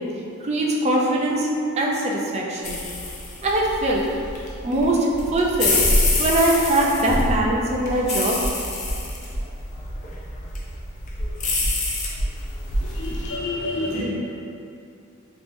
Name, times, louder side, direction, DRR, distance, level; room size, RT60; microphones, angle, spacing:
voice 1, 0.4-1.5 1.8-2.8 3.4-4.0 4.6-5.8 6.2-8.4, right 1 dB, 30° right, -2 dB, 0.3 m, -21 dB
sound 1, 2.6-13.3, left 1 dB, 35° left, 0.5 m, -26 dB
voice 2, 12.9-14.0, left 2 dB, 85° left, -9 dB, 1.1 m, -28 dB
3.6 x 2.9 x 2.6 m, 2.6 s
head